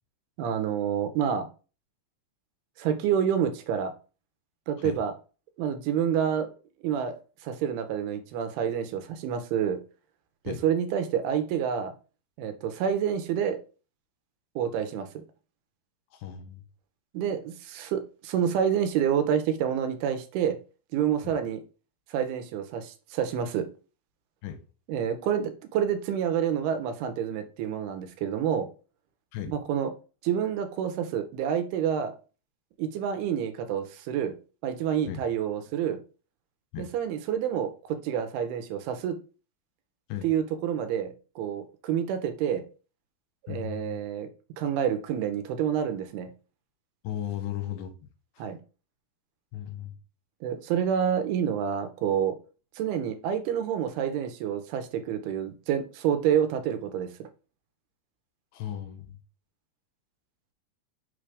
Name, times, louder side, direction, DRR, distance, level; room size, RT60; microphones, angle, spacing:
voice 1, 0.4-1.5 2.8-3.9 4.7-5.1 5.6-6.5 6.8-7.1 7.4-9.8 10.4-11.9 12.4-13.6 14.6-15.2 17.1-20.6 20.9-21.6 22.1-23.7 24.9-28.7 29.5-29.9 30.2-32.2 32.8-34.3 34.6-36.0 36.8-39.2 40.2-42.6 43.4-44.3 44.6-46.3 48.4-48.6 50.4-52.4 52.8-57.3, right 8 dB, 85° right, 2.6 m, -28 dB
voice 2, 16.2-16.6 24.4-24.6 29.3-29.5 35.1-35.2 36.7-36.9 40.1-40.3 43.5-44.0 47.0-47.9 49.5-49.9 58.5-59.2, left 11 dB, 80° left, 2.6 m, -35 dB
5.8 x 3.3 x 5.0 m
omnidirectional pair, 4.6 m